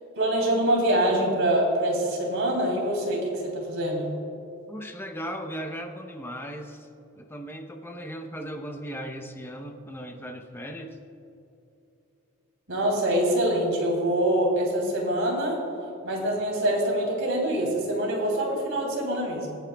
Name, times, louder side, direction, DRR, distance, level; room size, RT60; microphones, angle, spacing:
voice 1, 0.1-4.1 12.7-15.6 16.0-19.6, right 1 dB, 65° right, -1 dB, 3.0 m, -25 dB
voice 2, 4.7-6.9 7.2-11.0, equal, 10° left, 3 dB, 0.6 m, -37 dB
26.0 x 9.1 x 2.3 m, 2.9 s
head